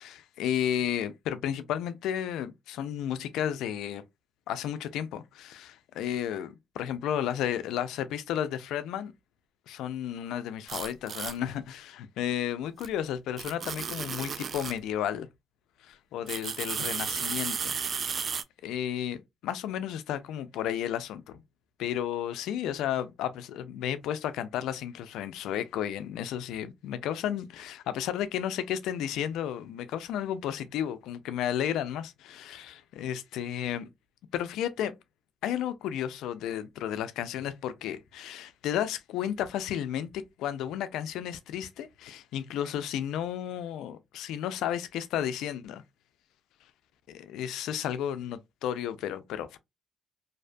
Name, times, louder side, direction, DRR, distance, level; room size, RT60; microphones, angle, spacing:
voice 1, 0.0-4.0 4.5-9.1 9.7-15.3 15.8-18.3 18.6-21.4 21.8-33.9 34.3-34.9 35.4-45.8 47.1-49.6, left 10 dB, 90° left, 0.3 m, -33 dB
sound 1, 10.7-11.4 12.8-12.9 13.4-14.8 16.3-18.4, right 6 dB, 50° right, 0.3 m, -33 dB
2.6 x 2.1 x 2.5 m
cardioid pair, 90°, 0 cm